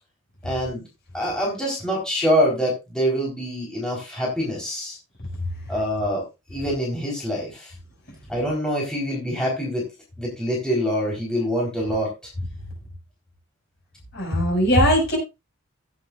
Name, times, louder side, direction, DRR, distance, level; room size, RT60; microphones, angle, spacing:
voice 1, 0.4-0.8 1.1-5.0 5.7-6.2 6.5-7.7 8.3-9.9 10.2-12.1, equal, 5° left, -4 dB, 4.0 m, -25 dB
voice 2, 14.1-15.2, equal, 50° left, 0 dB, 5.9 m, -19 dB
16.5 x 8.3 x 2.5 m, 0.25 s
head